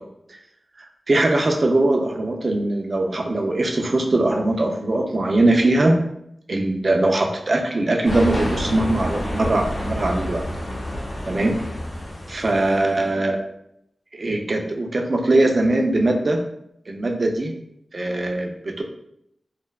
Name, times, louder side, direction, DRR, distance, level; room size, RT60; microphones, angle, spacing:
voice 1, 1.1-6.0 6.5-10.4 11.2-11.5 12.3-13.4 14.1-16.4 16.9-17.5 17.9-18.8, right 2 dB, 45° right, 2 dB, 0.3 m, -21 dB
sound 1, 8.0-13.0, equal, 50° left, 0.6 m, -29 dB
2.6 x 2.1 x 2.2 m, 0.75 s
wide cardioid pair, 105°, 0 cm